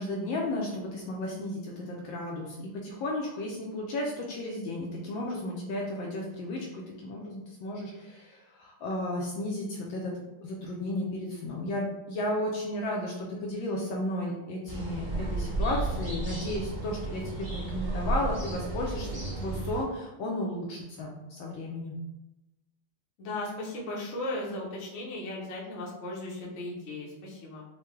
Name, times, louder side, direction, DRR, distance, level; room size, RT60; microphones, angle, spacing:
voice 1, 0.0-10.1 10.4-22.0, left 1 dB, 75° left, -1 dB, 1.2 m, -34 dB
sound 1, 14.7-19.8, right 2 dB, 15° right, 0.9 m, -33 dB
voice 2, 23.2-27.6, left 2 dB, 55° left, -4 dB, 0.8 m, -36 dB
4.5 x 2.2 x 3.1 m, 0.96 s
omnidirectional pair, 2.4 m